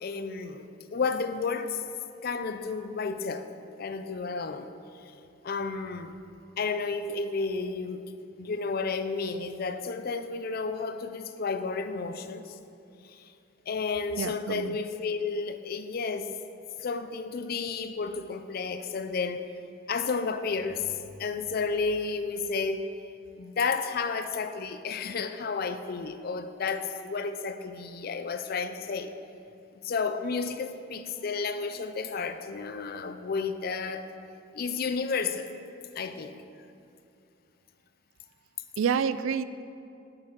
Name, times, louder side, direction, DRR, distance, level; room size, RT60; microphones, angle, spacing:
voice 1, 0.0-1.8 2.2-3.5 3.8-4.7 5.0-5.1 5.4-6.2 6.6-8.0 8.4-12.6 13.0-13.3 13.7-16.4 16.8-19.5 19.9-22.9 23.4-29.1 29.7-34.1 34.5-35.5 36.0-36.4, left 4 dB, 50° left, 9 dB, 0.5 m, -32 dB
voice 2, 14.2-14.8 38.8-39.4, right 7 dB, 85° right, 14 dB, 0.3 m, -28 dB
8.7 x 5.9 x 6.1 m, 2.6 s
head